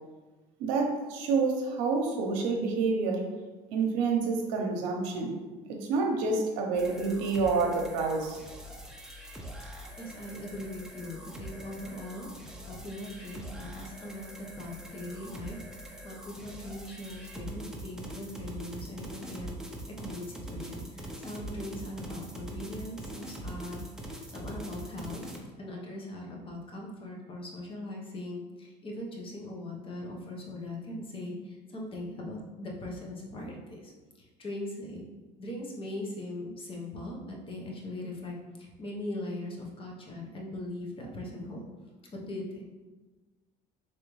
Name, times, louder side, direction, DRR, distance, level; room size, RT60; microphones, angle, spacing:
voice 1, 0.6-3.2 3.7-5.4 5.7-8.4, right 4 dB, 85° right, 2 dB, 0.7 m, -28 dB
sound 1, 6.7-25.4, right 1 dB, 5° right, 0.5 m, -43 dB
voice 2, 9.7-15.6 16.0-19.5 20.0-25.2 25.6-33.9 34.2-35.1 35.4-41.6 42.1-42.7, left 1 dB, 35° left, -1 dB, 0.9 m, -40 dB
3.4 x 3.2 x 3.1 m, 1.3 s
supercardioid pair, 110°, 16 cm